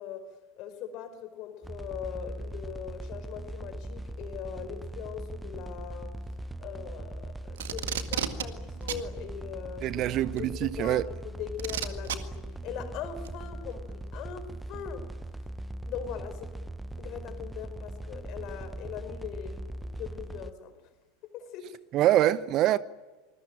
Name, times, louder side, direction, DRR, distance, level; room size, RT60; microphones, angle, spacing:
voice 1, 0.0-6.2 6.6-10.0 10.3-15.1 15.8-16.6 17.0-20.8 21.2-21.8, left 9 dB, 45° left, 4.8 m, -41 dB
sound 1, 1.6-20.5, right 1 dB, 5° right, 1.0 m, -40 dB
Packing tape duct tape, 7.6-8.5 8.9-9.0 10.4-10.5 11.6-12.2 13.3-13.4, right 10 dB, 65° right, 1.8 m, -31 dB
voice 2, 9.8-11.0 21.9-22.8, right 13 dB, 40° right, 0.9 m, -24 dB
26.5 x 21.0 x 8.8 m
figure-of-eight pair, 80°, 0 cm